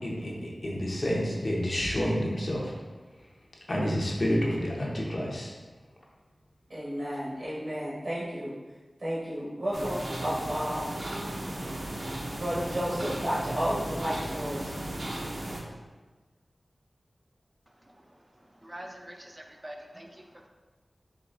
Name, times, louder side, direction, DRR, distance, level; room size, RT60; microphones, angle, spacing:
voice 1, 0.0-2.7 3.7-5.5, equal, 50° left, -3 dB, 0.8 m, -29 dB
voice 2, 6.7-8.5 9.0-10.9 12.3-14.7, equal, 80° right, -8 dB, 1.4 m, -32 dB
sound 1, 9.7-15.6, right 1 dB, 60° right, 0.7 m, -35 dB
voice 3, 18.5-20.5, right 1 dB, 20° right, 2 dB, 0.4 m, -45 dB
4.7 x 3.0 x 2.6 m, 1.3 s
wide cardioid pair, 55°, 0 cm